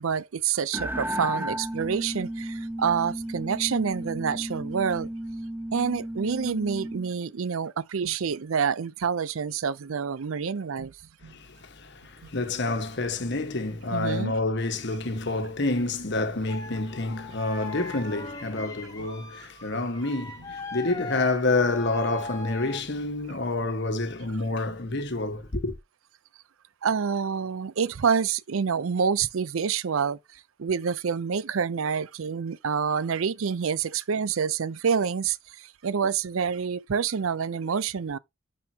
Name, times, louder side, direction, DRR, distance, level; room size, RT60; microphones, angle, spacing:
voice 1, 0.0-5.1 5.7-10.9 11.2-11.3 13.9-14.3 20.8-20.9 26.8-30.2 30.6-38.2, right 6 dB, 75° right, 0.5 m, -27 dB
sound 1, 0.7-7.1, right 1 dB, 10° right, 0.7 m, -34 dB
voice 2, 11.3-25.7, left 2 dB, 55° left, 1.3 m, -28 dB
sound 2, 16.5-22.9, left 3 dB, 15° left, 2.7 m, -40 dB
10.5 x 5.4 x 2.8 m
head